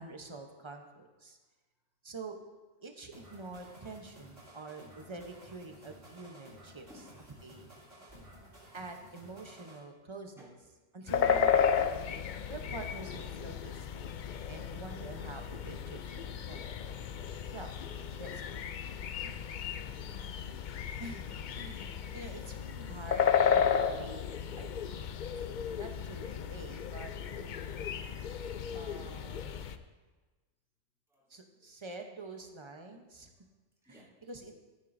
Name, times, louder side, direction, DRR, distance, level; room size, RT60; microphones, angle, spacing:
voice 1, 0.0-1.4 2.0-2.4 2.8-6.9 7.4-7.7 8.7-10.6 10.9-12.1 12.5-14.1 14.5-16.6 17.5-17.7 18.1-18.6 19.2-19.4 21.0-24.3 24.6-24.9 25.7-27.8 28.7-29.6 31.3-33.3 33.8-34.5, right 2 dB, 25° right, 4 dB, 0.8 m, -47 dB
sound 1, 3.1-9.8, equal, 65° right, 3.9 m, -55 dB
voice 2, 7.9-8.6 10.4-10.5 20.1-20.4 29.7-29.9 31.1-31.7 33.8-34.0, left 1 dB, ahead, -7 dB, 2.7 m, -59 dB
sound 2, 11.1-29.8, left 7 dB, 70° left, 0.4 m, -33 dB
15.0 x 9.1 x 2.7 m, 1.2 s
omnidirectional pair, 1.4 m